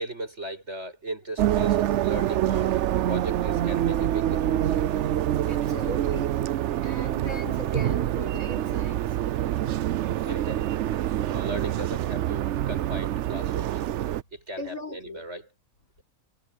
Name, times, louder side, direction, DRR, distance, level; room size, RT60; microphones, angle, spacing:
voice 1, 0.0-2.8 3.1-4.7 9.9-10.7 11.3-13.8 14.3-15.4, right 1 dB, 50° right, 7.8 m, -37 dB
sound 1, 1.4-14.2, right 12 dB, 65° right, 0.8 m, -26 dB
voice 2, 5.5-6.4 6.8-9.0 14.6-15.3, left 3 dB, 65° left, 5.7 m, -38 dB
omnidirectional pair, 1.6 m